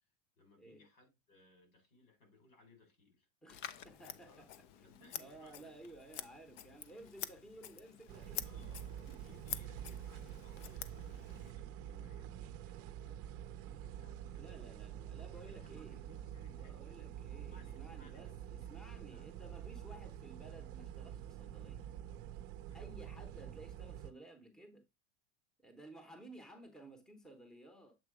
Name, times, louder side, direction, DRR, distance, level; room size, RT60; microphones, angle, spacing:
voice 1, 0.4-3.3 3.7-4.5 4.8-6.0 8.4-13.3 13.6-14.6 15.3-17.0 17.5-18.3 19.0-19.4 22.7-23.2, left 3 dB, 85° left, 4.7 m, -65 dB
voice 2, 3.4-4.5 4.8-8.7 9.1-9.2 14.4-16.0 16.5-21.8 22.7-24.8 25.6-28.0, right 2 dB, ahead, 0.8 m, -55 dB
Scissors, 3.5-11.5, left 10 dB, 50° left, 0.6 m, -48 dB
sound 1, 8.1-24.1, right 10 dB, 35° right, 0.6 m, -47 dB
7.6 x 2.9 x 4.8 m
supercardioid pair, 140°, 40 cm